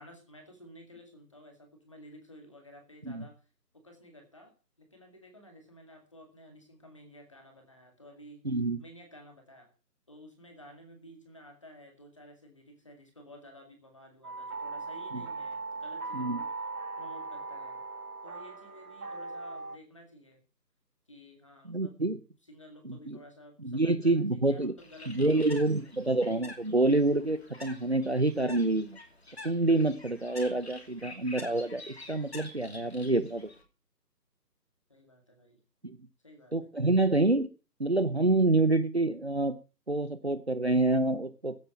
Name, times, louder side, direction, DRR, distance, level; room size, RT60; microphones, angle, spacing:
voice 1, 0.0-3.4 3.7-4.5 4.8-8.5 8.8-9.7 10.1-16.5 17.0-17.8 18.2-20.4 21.1-22.0 22.5-25.8 34.9-35.6 36.2-36.7, equal, 20° left, 3 dB, 2.1 m, -53 dB
voice 2, 8.4-8.8 15.1-15.2 16.1-16.4 21.6-22.2 22.8-23.2 23.6-24.7 25.1-29.0 29.4-33.5 35.8-36.0 36.5-37.5 37.8-39.6 39.9-41.6, right 2 dB, 40° right, 13 dB, 0.8 m, -27 dB
sound 1, 14.2-19.8, right 3 dB, 60° right, 1.3 m, -39 dB
Bird, 24.8-33.6, left 2 dB, 40° left, 2.8 m, -48 dB
16.5 x 8.1 x 5.9 m, 0.34 s
figure-of-eight pair, 180°, 49 cm